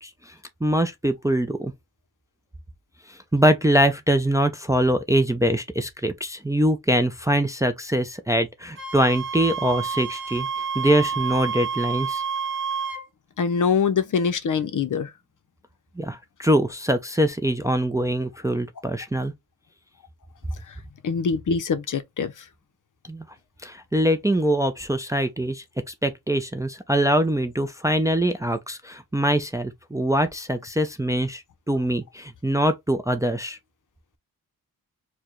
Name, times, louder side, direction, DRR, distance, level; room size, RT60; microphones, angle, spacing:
voice 1, 0.0-0.3 0.6-1.7 3.1-10.5 10.7-12.2 16.0-19.3 23.1-23.3 23.6-33.6, right 1 dB, 10° right, 0.4 m, -23 dB
Wind instrument woodwind instrument, 8.8-13.0, right 6 dB, 30° right, 1.0 m, -29 dB
voice 2, 13.4-15.1 21.0-22.3, left 6 dB, 55° left, 0.6 m, -23 dB
4.6 x 2.2 x 2.9 m
wide cardioid pair, 110°, 37 cm